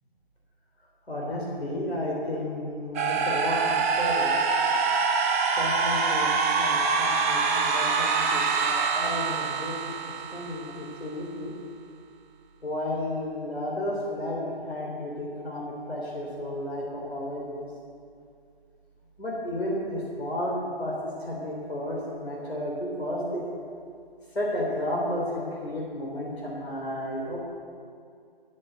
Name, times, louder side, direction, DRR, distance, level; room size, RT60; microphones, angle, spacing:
voice 1, 1.1-4.4 5.6-6.3 6.6-10.0 10.3-11.5 12.6-17.7 19.2-23.4 24.3-27.4, left 1 dB, 80° left, -3 dB, 3.7 m, -32 dB
sound 1, 2.9-10.9, right 5 dB, 15° right, 0.6 m, -25 dB
13.0 x 8.0 x 8.1 m, 2.3 s
figure-of-eight pair, 140°, 31 cm